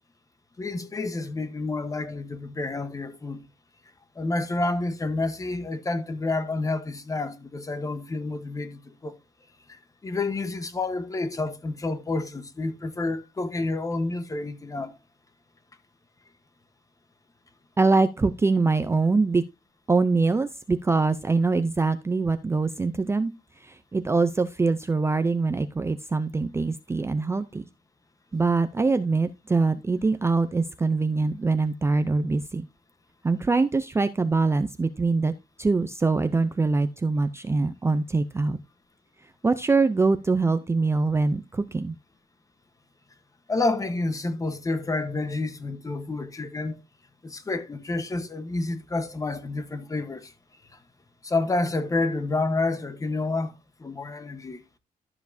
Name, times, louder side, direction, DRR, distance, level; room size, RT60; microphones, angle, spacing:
voice 1, 0.6-3.4 4.2-9.2 9.7-15.0 43.5-46.8 47.2-50.3 50.7-50.8 51.2-53.5 53.8-54.6, left 3 dB, 20° left, 1.0 m, -29 dB
voice 2, 17.8-19.4 19.9-23.3 23.6-27.7 28.3-32.7 33.2-35.3 35.6-38.6 39.4-41.9, right 3 dB, 15° right, 0.4 m, -23 dB
12.5 x 7.0 x 2.6 m
wide cardioid pair, 170°, 15 cm